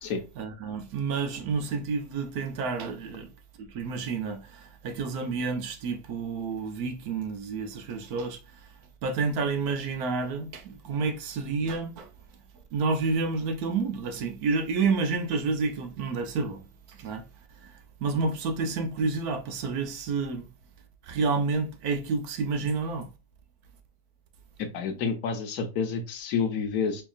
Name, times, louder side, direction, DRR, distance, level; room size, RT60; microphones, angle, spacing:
voice 1, 0.4-3.3 3.6-8.7 9.0-12.1 12.7-17.2 17.6-17.7 18.0-20.5 21.0-23.1, right 4 dB, 70° right, 1.2 m, -29 dB
voice 2, 24.6-27.0, left 5 dB, 65° left, 1.2 m, -29 dB
4.5 x 2.8 x 2.3 m
omnidirectional pair, 1.8 m